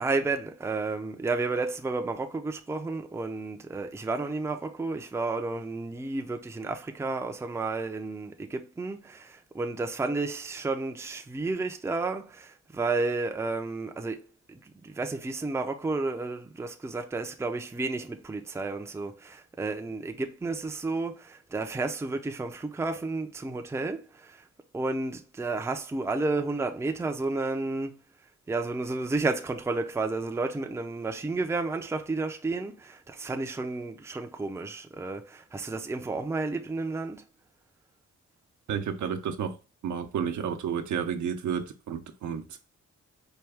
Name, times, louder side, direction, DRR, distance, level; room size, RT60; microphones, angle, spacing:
voice 1, 0.0-24.5 24.7-27.9 28.5-37.2, right 3 dB, 10° right, 0.4 m, -32 dB
voice 2, 38.7-39.6 39.8-42.7, right 7 dB, 75° right, 0.7 m, -31 dB
4.5 x 2.3 x 3.4 m
cardioid pair, 85°, 30 cm